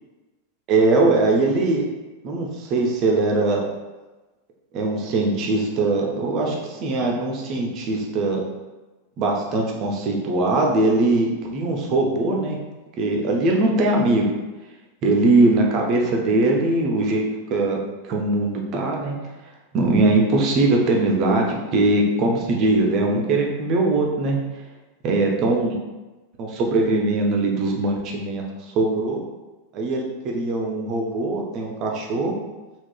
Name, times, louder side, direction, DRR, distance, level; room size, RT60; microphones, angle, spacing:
voice 1, 0.7-1.8 2.2-3.6 4.7-8.4 9.2-12.6 13.0-14.3 15.0-17.8 18.1-19.2 19.7-24.4 25.0-25.8 26.4-28.4 28.7-29.2 29.7-32.3, right 2 dB, 35° right, 0 dB, 0.6 m, -21 dB
3.6 x 2.4 x 2.3 m, 1.1 s
figure-of-eight pair, 90°, 0 cm